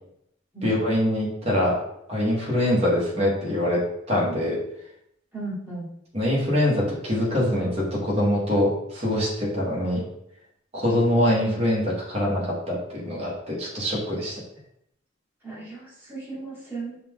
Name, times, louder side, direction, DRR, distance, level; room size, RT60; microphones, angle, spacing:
voice 1, 0.6-1.8 2.1-4.6 6.1-10.0 10.7-14.4, left 1 dB, 35° right, -4 dB, 1.5 m, -24 dB
voice 2, 5.3-5.9 15.4-17.0, right 2 dB, 10° right, -6 dB, 1.5 m, -35 dB
5.6 x 2.5 x 3.6 m, 0.75 s
head